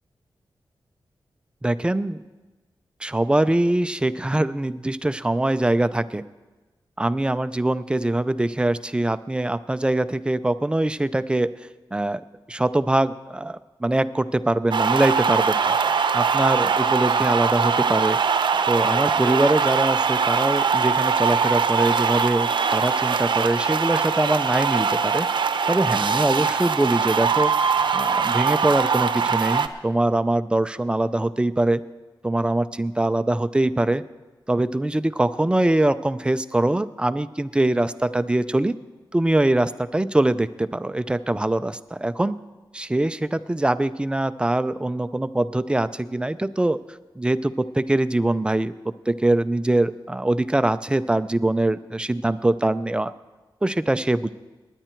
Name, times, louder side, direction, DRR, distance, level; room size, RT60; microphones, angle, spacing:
voice 1, 1.6-2.2 3.0-6.2 7.0-11.5 11.9-15.8 16.1-18.2 18.7-25.3 25.7-27.5 27.9-31.8 32.2-34.0 34.5-38.8 39.1-42.4 42.7-48.7 49.1-53.1 53.6-54.3, right 1 dB, 10° right, 13 dB, 0.4 m, -23 dB
sound 1, 14.7-29.7, right 6 dB, 65° right, 0.7 m, -22 dB
19.5 x 9.9 x 4.5 m, 1.2 s
wide cardioid pair, 125°, 8 cm